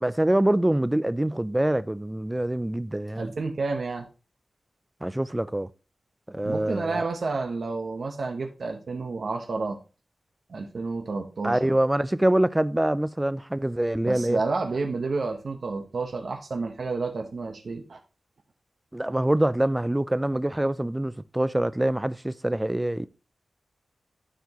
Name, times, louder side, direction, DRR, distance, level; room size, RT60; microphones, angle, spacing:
voice 1, 0.0-3.3 5.0-5.7 6.3-7.0 11.4-14.4 18.9-23.1, right 1 dB, 10° right, 0.4 m, -25 dB
voice 2, 3.2-4.1 6.4-9.8 10.5-11.7 14.0-18.0, right 3 dB, 60° right, 1.1 m, -30 dB
13.0 x 4.6 x 3.0 m
wide cardioid pair, 125°, 0 cm